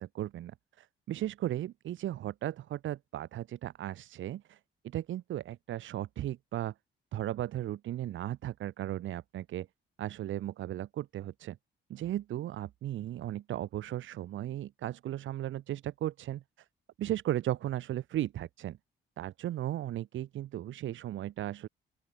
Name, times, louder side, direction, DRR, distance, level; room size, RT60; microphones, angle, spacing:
voice 1, 0.0-6.7 7.1-9.7 10.0-11.6 11.9-16.7 17.0-18.8 19.2-21.7, right 13 dB, 75° right, 2.1 m, -36 dB
open air
cardioid pair, 90°, 20 cm